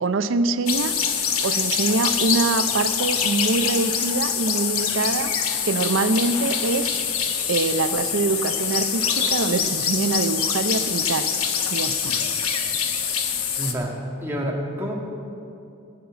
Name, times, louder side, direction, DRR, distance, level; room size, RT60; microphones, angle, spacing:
voice 1, 0.0-0.9 1.4-5.3 5.6-7.0 7.5-11.3 11.7-12.2, right 3 dB, 60° right, 11 dB, 0.6 m, -24 dB
sound 1, 0.7-13.7, left 7 dB, 85° left, 1.1 m, -24 dB
voice 2, 13.6-13.9 14.2-14.9, equal, 10° right, -2 dB, 1.7 m, -28 dB
16.0 x 5.7 x 9.6 m, 2.7 s
head